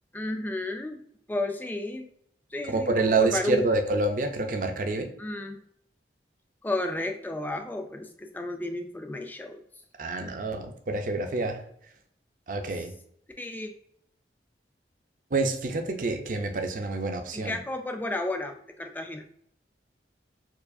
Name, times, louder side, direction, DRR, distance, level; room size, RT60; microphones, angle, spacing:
voice 1, 0.1-1.0 1.3-2.1 2.5-3.6 5.2-5.6 6.6-9.6 13.4-13.7 17.3-19.2, left 2 dB, 10° left, 5 dB, 0.3 m, -32 dB
voice 2, 2.6-5.1 10.0-11.6 12.5-12.9 15.3-17.6, right 3 dB, 45° right, 5 dB, 0.5 m, -27 dB
4.5 x 2.4 x 2.5 m, 0.67 s
head